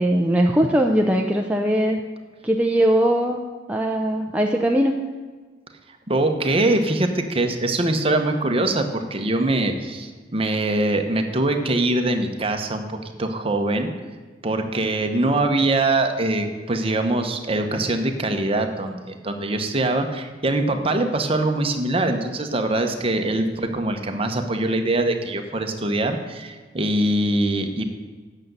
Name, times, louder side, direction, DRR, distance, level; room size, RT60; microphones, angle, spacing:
voice 1, 0.0-2.0 2.4-4.9, right 1 dB, 5° right, 1 dB, 0.5 m, -20 dB
voice 2, 6.1-13.9 14.4-27.8, right 2 dB, 30° right, 5 dB, 1.0 m, -23 dB
8.5 x 6.7 x 7.9 m, 1.4 s
head